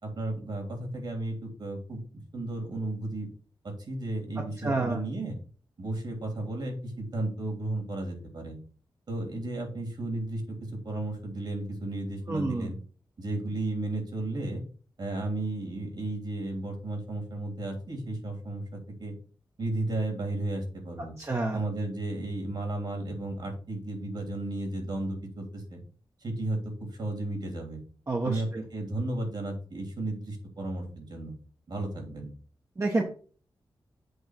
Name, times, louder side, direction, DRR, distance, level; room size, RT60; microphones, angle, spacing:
voice 1, 0.0-2.0 2.3-3.3 3.6-5.4 5.8-8.6 9.1-12.8 13.2-14.6 15.0-19.1 19.6-21.1 21.5-25.8 26.2-27.8 28.2-31.4 31.7-32.3, right 2 dB, 60° right, 3 dB, 3.1 m, -34 dB
voice 2, 4.6-5.0 12.3-12.7 21.2-21.6 28.1-28.6 32.8-33.0, right 2 dB, 35° right, 1 dB, 1.2 m, -28 dB
7.9 x 3.1 x 6.1 m, 0.41 s
cardioid pair, 70°, 9 cm